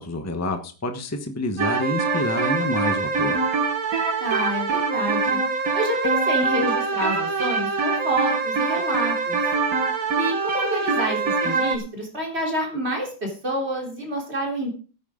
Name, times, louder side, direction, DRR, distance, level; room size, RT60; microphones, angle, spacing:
voice 1, 0.0-3.4, left 2 dB, 10° left, 6 dB, 1.0 m, -28 dB
sound 1, 1.6-11.8, right 4 dB, 60° right, 1.8 m, -24 dB
voice 2, 4.2-5.4 5.7-9.4 10.1-14.7, right 1 dB, 40° right, 0 dB, 4.0 m, -28 dB
16.5 x 9.2 x 3.8 m, 0.38 s
omnidirectional pair, 1.8 m